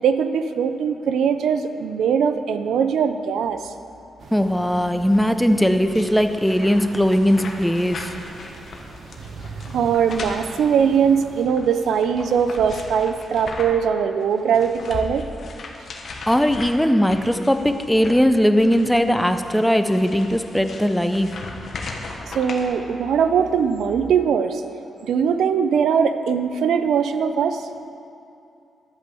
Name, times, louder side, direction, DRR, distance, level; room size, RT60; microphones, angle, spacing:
voice 1, 0.0-3.7 9.3-15.3 22.3-24.6 25.0-27.6, right 7 dB, 85° right, 10 dB, 0.5 m, -21 dB
sound 1, 4.2-11.4, right 3 dB, 70° right, 1.1 m, -43 dB
voice 2, 4.3-8.1 16.3-21.3, equal, 5° left, 8 dB, 0.6 m, -19 dB
sound 2, 5.8-13.9 14.2-22.7, left 3 dB, 60° left, 1.2 m, -37 dB
11.5 x 5.3 x 7.5 m, 2.7 s
cardioid pair, 80°, 0 cm